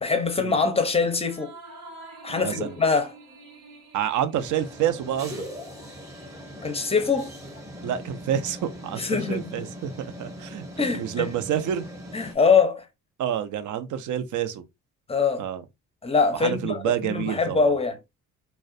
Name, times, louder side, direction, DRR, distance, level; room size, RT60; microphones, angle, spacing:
voice 1, 0.0-1.5 2.2-3.1 6.6-7.3 9.0-9.7 10.8-11.3 12.1-12.8 15.1-15.5 16.0-18.0, left 5 dB, 20° left, 0.5 m, -23 dB
sound 1, 1.1-5.9, right 2 dB, 80° right, 1.0 m, -47 dB
voice 2, 2.3-2.7 3.9-5.4 7.8-11.9 13.2-14.6 15.4-15.6 16.4-17.7, right 10 dB, 65° right, 0.5 m, -28 dB
sound 2, 4.4-12.4, equal, 10° right, 0.8 m, -40 dB
2.3 x 2.1 x 2.5 m
cardioid pair, 80°, 33 cm